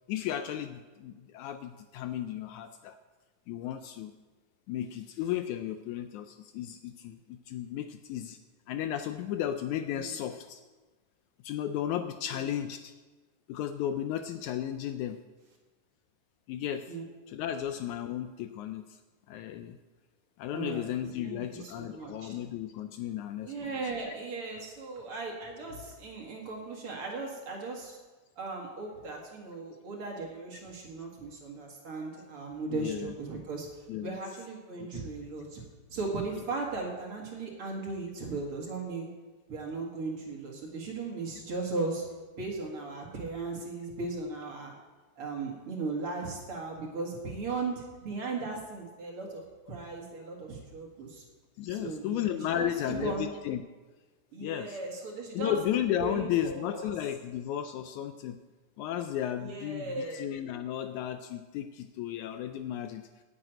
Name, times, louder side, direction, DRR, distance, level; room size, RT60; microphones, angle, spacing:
voice 1, 0.1-3.0 3.5-4.1 4.7-8.4 8.7-10.6 11.4-12.9 13.5-15.2 16.5-16.9 17.3-19.0 19.3-19.8 20.4-23.8 24.1-24.2 32.7-33.1 33.9-34.2 34.8-34.9 51.6-53.6 54.4-54.8 55.3-58.4 58.8-63.1, left 10 dB, 80° left, 9 dB, 1.8 m, -34 dB
voice 2, 9.9-10.2 12.3-12.6 16.9-17.0 20.5-20.9 21.2-22.3 23.4-28.0 28.4-33.7 34.0-35.6 35.9-39.1 39.5-42.1 42.4-44.7 45.2-49.4 49.7-51.2 51.7-52.3 52.5-52.7 53.0-53.3 54.3-55.6 56.0-56.9 59.4-60.2, right 3 dB, 45° right, 0 dB, 2.5 m, -37 dB
9.8 x 7.8 x 9.0 m, 1.3 s
omnidirectional pair, 3.7 m